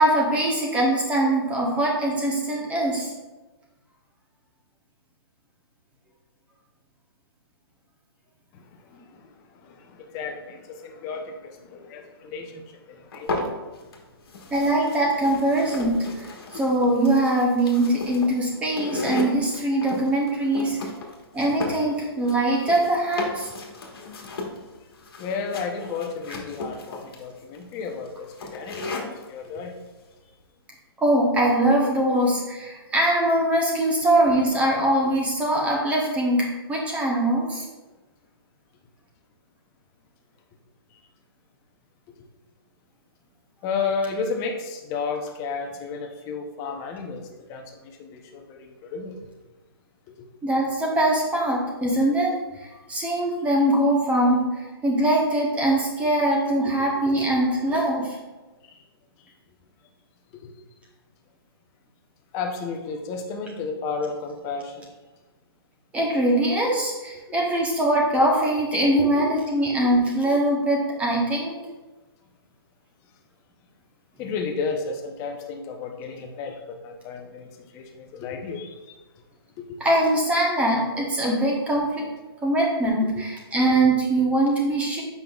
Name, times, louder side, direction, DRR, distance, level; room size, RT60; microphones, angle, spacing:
voice 1, 0.0-3.1 14.5-16.3 16.5-20.8 21.3-23.5 31.0-37.6 50.4-52.3 52.6-58.2 65.9-71.6 79.8-82.0 82.4-85.0, right 1 dB, 10° right, -2 dB, 0.9 m, -22 dB
voice 2, 10.1-12.6 13.1-13.3 25.2-28.3 28.5-28.9 29.3-29.7 43.6-47.2 47.5-49.2 57.3-57.4 62.3-64.8 69.0-69.1 69.6-70.0 74.2-76.5 76.8-77.5 77.7-78.7 83.1-83.2, left 5 dB, 25° left, 2 dB, 0.7 m, -32 dB
sound 1, 13.1-14.0 14.3-29.3, left 3 dB, 70° left, 1.3 m, -35 dB
7.5 x 5.4 x 2.3 m, 1.2 s
hypercardioid pair, 140°, 13 cm